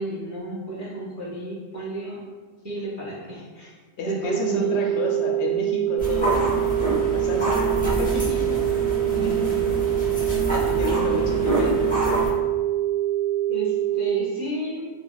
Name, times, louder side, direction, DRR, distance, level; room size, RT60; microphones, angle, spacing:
voice 1, 0.0-2.2 2.6-3.7 4.0-4.9 7.8-8.3 11.0-11.4 13.5-14.9, right 1 dB, 25° right, -6 dB, 0.3 m, -32 dB
voice 2, 4.0-8.6 9.1-9.7 10.5-11.9, left 2 dB, 90° left, 0 dB, 0.9 m, -31 dB
sound 1, 4.2-14.2, right 13 dB, 70° right, 0.9 m, -24 dB
sound 2, 6.0-12.3, right 1 dB, 10° left, 0.7 m, -27 dB
3.3 x 2.2 x 2.2 m, 1.4 s
omnidirectional pair, 1.1 m